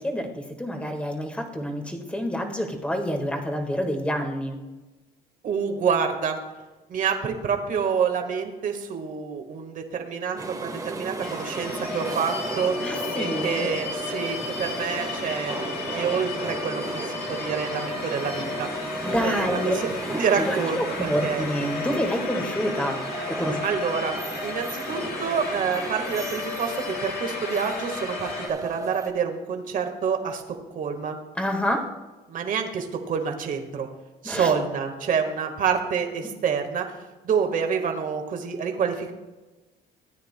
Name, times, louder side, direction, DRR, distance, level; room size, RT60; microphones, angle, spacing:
voice 1, 0.0-4.6 12.8-13.7 19.0-19.8 20.1-23.0 23.3-23.6 31.4-31.9 34.2-34.5, equal, 5° left, 3 dB, 1.6 m, -28 dB
voice 2, 5.4-6.4 6.9-12.7 13.1-15.6 15.9-18.7 19.2-19.9 20.2-21.5 23.6-31.2 32.3-33.9 34.2-36.9 37.2-39.1, right 6 dB, 50° right, 5 dB, 1.5 m, -27 dB
sound 1, 10.4-29.1, right 3 dB, 20° right, 1.3 m, -35 dB
sound 2, 11.2-28.5, left 4 dB, 70° left, 2.0 m, -34 dB
17.5 x 9.2 x 2.2 m, 1.2 s
cardioid pair, 110°, 17 cm